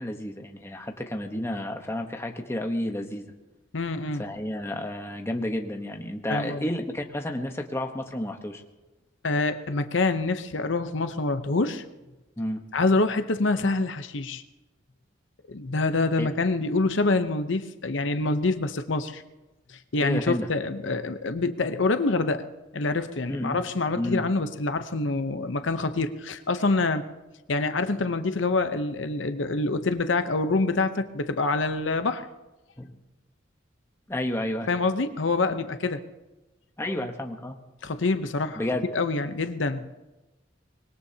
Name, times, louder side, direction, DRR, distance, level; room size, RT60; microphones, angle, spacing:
voice 1, 0.0-3.3 4.2-8.6 12.4-12.6 16.2-16.3 20.0-20.5 23.2-23.6 23.9-24.2 32.8-33.0 34.1-34.7 36.8-37.6 38.6-38.9, left 1 dB, 15° left, 4 dB, 1.1 m, -31 dB
voice 2, 3.7-4.2 6.3-6.7 9.2-11.8 12.7-14.4 15.5-19.2 19.7-22.5 22.7-27.1 27.5-32.3 34.7-36.0 37.8-38.6 38.9-39.9, left 3 dB, 75° left, 9 dB, 0.8 m, -26 dB
25.0 x 20.5 x 2.9 m, 1.1 s
head